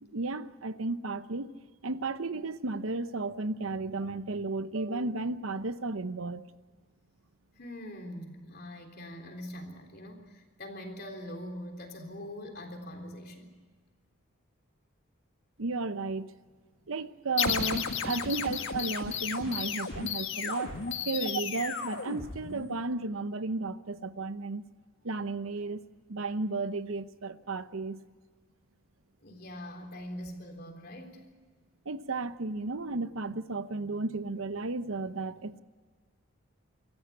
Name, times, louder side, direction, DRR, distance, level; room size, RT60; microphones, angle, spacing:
voice 1, 0.0-1.5 1.8-6.4 15.6-16.3 16.9-20.8 21.1-24.6 25.0-25.8 26.1-28.0 31.8-35.6, right 3 dB, 80° right, 0.9 m, -33 dB
voice 2, 7.6-13.5 20.8-20.9 29.2-31.2, left 1 dB, 45° left, 3.6 m, -43 dB
sound 1, 17.4-22.8, left 6 dB, 65° left, 1.7 m, -33 dB
26.0 x 14.5 x 9.5 m
head